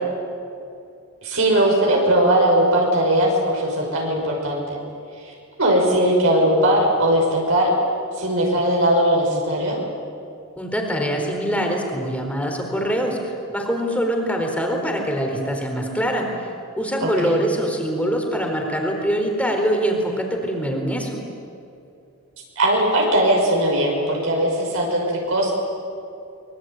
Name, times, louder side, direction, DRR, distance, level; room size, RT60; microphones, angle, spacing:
voice 1, 1.2-4.8 5.2-5.3 5.6-7.7 8.2-9.8 17.0-17.4 22.6-25.5, right 1 dB, 65° right, -1 dB, 6.0 m, -19 dB
voice 2, 10.6-16.3 16.8-21.2, equal, 5° left, 2 dB, 4.2 m, -23 dB
25.0 x 23.5 x 9.1 m, 2.6 s
head